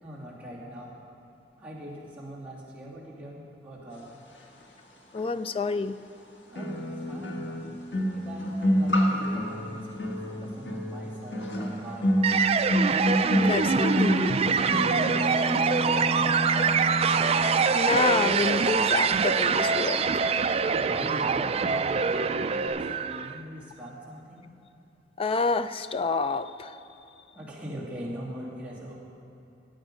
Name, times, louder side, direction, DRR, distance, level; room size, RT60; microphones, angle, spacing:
voice 1, 0.0-1.0 1.6-4.1 6.5-7.6 8.1-12.2 15.1-16.7 20.6-24.5 27.3-29.0, equal, 10° right, -7 dB, 2.5 m, -42 dB
voice 2, 5.1-6.0 13.2-14.4 17.7-20.1 25.2-26.8, left 4 dB, 35° left, 12 dB, 0.4 m, -28 dB
sound 1, 5.2-5.3 6.6-17.7 17.9-18.2, equal, 90° left, 1.6 m, -28 dB
sound 2, 12.2-23.4, right 5 dB, 35° right, 0.4 m, -25 dB
sound 3, 17.2-19.6 22.7-22.8, equal, 10° left, 1.7 m, -47 dB
15.5 x 9.0 x 5.2 m, 2.9 s
head